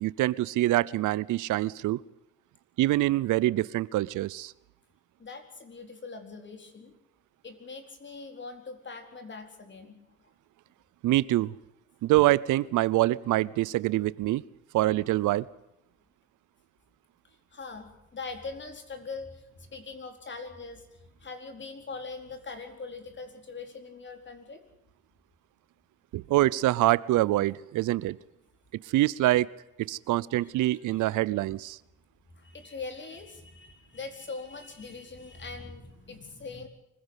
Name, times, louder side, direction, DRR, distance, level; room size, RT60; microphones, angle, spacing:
voice 1, 0.0-2.0 2.8-4.5 11.0-11.5 12.0-14.4 14.7-15.4 26.1-28.2 28.9-29.5 29.8-31.8, right 16 dB, 85° right, 21 dB, 0.7 m, -25 dB
voice 2, 5.2-6.9 7.4-10.0 17.5-24.6 30.4-31.0 32.3-36.7, left 4 dB, 40° left, 6 dB, 4.4 m, -42 dB
25.0 x 16.0 x 8.2 m, 0.84 s
cardioid pair, 90°, 30 cm